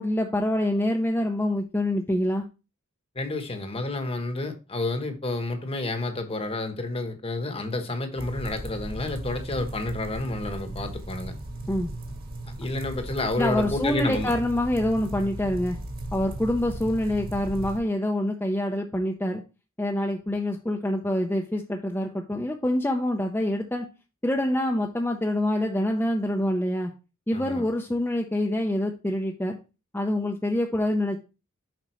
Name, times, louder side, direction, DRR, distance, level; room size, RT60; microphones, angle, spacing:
voice 1, 0.0-2.4 11.7-11.9 13.4-15.8 16.1-19.4 19.8-23.9 24.2-26.9 27.3-29.6 29.9-31.2, left 1 dB, 10° left, 0.6 m, -26 dB
voice 2, 3.1-11.3 12.6-14.3 27.3-27.6, left 2 dB, 30° left, 1.0 m, -30 dB
sound 1, 8.2-17.8, right 1 dB, 45° right, 1.8 m, -36 dB
7.5 x 5.2 x 3.0 m
head